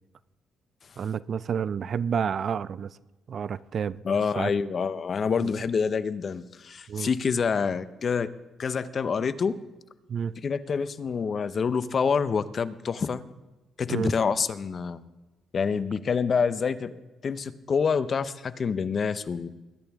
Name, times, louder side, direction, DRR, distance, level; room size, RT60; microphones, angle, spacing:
voice 1, 1.0-3.0 3.3-4.0 4.4-4.5 5.4-5.5 6.9-7.1 10.1-10.3 13.9-14.1, right 7 dB, 55° right, 0.4 m, -29 dB
voice 2, 4.0-8.3 8.6-9.5 10.4-13.2 13.8-15.0 15.5-17.0 17.2-19.5, left 5 dB, 45° left, 0.7 m, -27 dB
21.0 x 10.5 x 3.5 m
cardioid pair, 90°, 0 cm